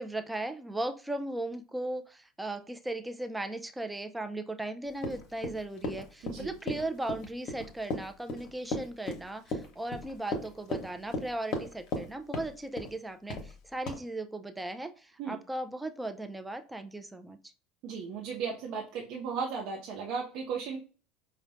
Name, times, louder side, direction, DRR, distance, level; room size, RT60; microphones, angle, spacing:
voice 1, 0.0-17.4, right 2 dB, 10° right, 7 dB, 0.4 m, -37 dB
Run, 5.0-12.1 12.3-12.9 13.3-13.5 13.9-14.0, left 2 dB, 55° left, 0.9 m, -35 dB
voice 2, 6.2-6.5 15.2-15.4 17.8-20.8, right 6 dB, 60° right, -1 dB, 0.6 m, -35 dB
4.8 x 2.1 x 2.5 m, 0.37 s
hypercardioid pair, 80°, 0 cm